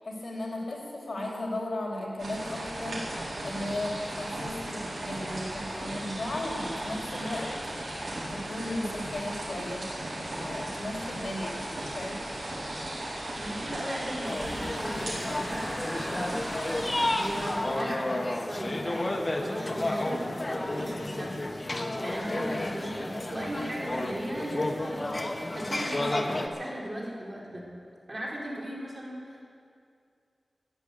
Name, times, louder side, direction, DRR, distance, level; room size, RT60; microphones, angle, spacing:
voice 1, 0.0-3.0 3.4-7.5 8.3-9.9 10.4-11.7 12.0-12.2, left 1 dB, 60° left, -2 dB, 3.9 m, -35 dB
sound 1, 2.2-17.5, right 1 dB, 75° right, 4.5 m, -36 dB
voice 2, 13.3-16.6 17.2-20.3 20.7-21.4 22.0-25.1 25.5-27.7 28.1-29.4, equal, 40° right, -4 dB, 4.1 m, -37 dB
sound 2, 14.2-26.5, left 1 dB, 35° left, 1.2 m, -31 dB
14.0 x 10.0 x 8.2 m, 2.3 s
wide cardioid pair, 60°, 0 cm